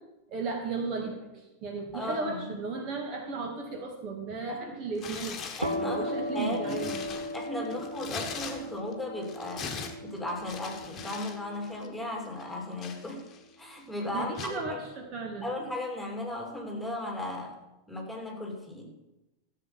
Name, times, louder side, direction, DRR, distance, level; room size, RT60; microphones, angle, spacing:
voice 1, 0.3-5.4 5.8-7.9 14.1-15.5, right 4 dB, 35° right, 2 dB, 1.9 m, -35 dB
voice 2, 1.9-2.6 4.5-4.8 5.6-6.9 7.3-13.3 13.6-14.8 15.4-17.6 17.9-18.9, left 1 dB, ahead, 0 dB, 3.0 m, -36 dB
Tearing, 4.9-5.8 6.3-8.9 9.2-11.4 11.6-11.9 12.4-13.5 14.3-14.6, left 6 dB, 25° left, 1.6 m, -41 dB
sound 1, 5.6-13.1, left 1 dB, 85° right, 1.3 m, -38 dB
15.0 x 7.8 x 5.9 m, 0.99 s
figure-of-eight pair, 90°, 0 cm